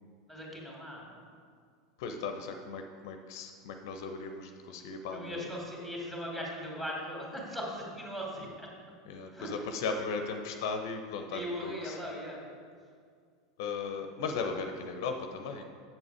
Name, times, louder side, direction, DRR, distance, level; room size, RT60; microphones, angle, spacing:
voice 1, 0.3-1.2 5.1-8.7 9.3-9.5 11.3-12.4, equal, 5° right, -3 dB, 2.4 m, -39 dB
voice 2, 2.0-5.4 9.1-12.0 13.6-15.6, left 4 dB, 60° left, 6 dB, 0.6 m, -37 dB
7.7 x 7.1 x 4.7 m, 2.1 s
figure-of-eight pair, 85°, 2 cm